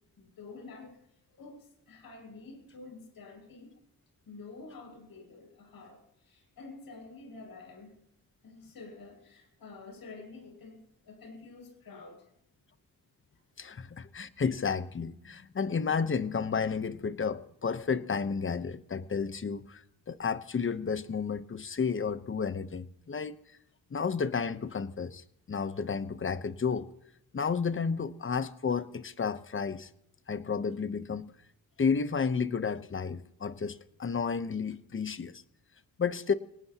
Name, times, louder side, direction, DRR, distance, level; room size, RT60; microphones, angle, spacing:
voice 1, 0.2-1.0 1.3-3.7 4.2-8.0 8.4-12.3 13.3-13.4, left 3 dB, 80° left, 6.9 m, -49 dB
voice 2, 13.6-23.4 23.9-26.9 27.3-29.9 30.3-31.3 31.8-35.4 36.0-36.3, left 5 dB, 35° left, 1.0 m, -32 dB
24.5 x 18.5 x 3.0 m
cardioid pair, 85°, 35 cm